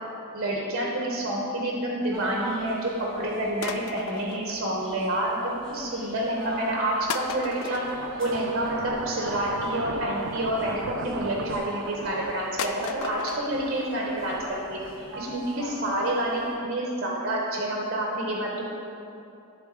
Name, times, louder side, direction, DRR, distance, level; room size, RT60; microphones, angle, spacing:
voice 1, 0.3-7.8 8.2-14.4 14.7-18.6, right 1 dB, 45° right, -3 dB, 0.8 m, -28 dB
sound 1, 2.1-16.5, equal, 5° left, 1.1 m, -42 dB
sound 2, 3.6-5.3 5.6-6.1 6.7-6.8 7.1-10.7 11.4-11.9 12.2-12.3 12.6-13.4 13.8-13.9 14.1-14.2 14.6-14.7 14.9-15.0 15.4-15.5 15.8-15.9 16.3-16.4 16.7-16.8, left 6 dB, 75° left, 0.3 m, -37 dB
sound 3, 7.3-15.5, right 5 dB, 65° right, 0.3 m, -38 dB
10.5 x 3.7 x 3.6 m, 2.8 s
head